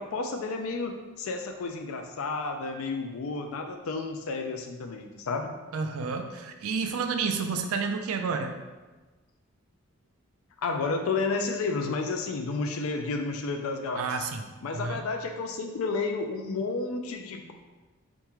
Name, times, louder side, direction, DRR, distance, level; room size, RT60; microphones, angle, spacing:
voice 1, 0.0-5.5 10.6-14.1 14.6-17.5, left 3 dB, 75° left, 4 dB, 0.4 m, -31 dB
voice 2, 5.7-8.6 13.9-14.4 14.7-15.0, right 5 dB, 80° right, 6 dB, 0.4 m, -30 dB
4.5 x 3.5 x 3.0 m, 1.2 s
head